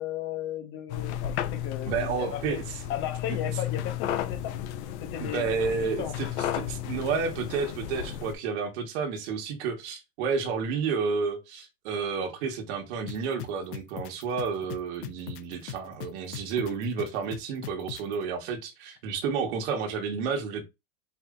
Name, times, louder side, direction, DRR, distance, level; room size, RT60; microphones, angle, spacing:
voice 1, 0.0-2.4 2.9-4.6 5.0-6.1, left 10 dB, 25° left, 1.0 m, -35 dB
sound 1, 0.9-8.3, left 11 dB, 50° left, 0.7 m, -33 dB
voice 2, 1.9-2.6 5.2-20.6, right 5 dB, 45° right, 1.4 m, -31 dB
sound 2, 13.1-18.2, left 10 dB, 75° left, 0.9 m, -39 dB
4.8 x 2.7 x 3.7 m
supercardioid pair, 155°, 45 cm